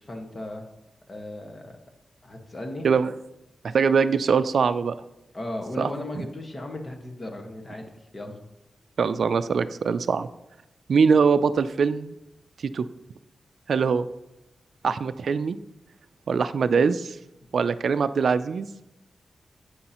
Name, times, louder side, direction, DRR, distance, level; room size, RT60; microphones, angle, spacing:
voice 1, 0.1-0.6 1.1-1.6 2.2-2.9 5.3-7.9 8.1-8.4, left 1 dB, 40° left, 3 dB, 1.5 m, -35 dB
voice 2, 3.6-5.0 5.8-5.9 9.0-10.3 10.9-12.2 12.7-12.9 13.7-14.1 14.8-15.6 16.3-17.2 17.5-18.7, right 5 dB, 75° right, 13 dB, 0.4 m, -22 dB
9.5 x 8.7 x 3.0 m, 0.89 s
wide cardioid pair, 95°, 0 cm